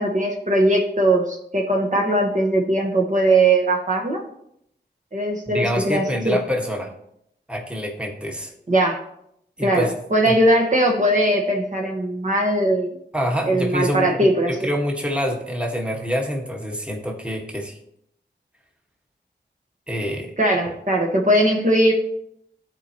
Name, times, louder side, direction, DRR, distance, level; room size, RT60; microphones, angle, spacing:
voice 1, 0.0-4.2 5.1-6.4 8.7-9.0 9.6-12.9 13.4-14.6 20.4-21.9, right 1 dB, 40° right, 0 dB, 1.2 m, -20 dB
voice 2, 5.5-6.9 7.5-8.5 9.6-9.9 10.2-10.3 13.1-17.8 19.9-20.3 20.7-20.8, equal, 5° right, 0 dB, 1.4 m, -26 dB
13.0 x 4.5 x 2.9 m, 0.74 s
wide cardioid pair, 70°, 19 cm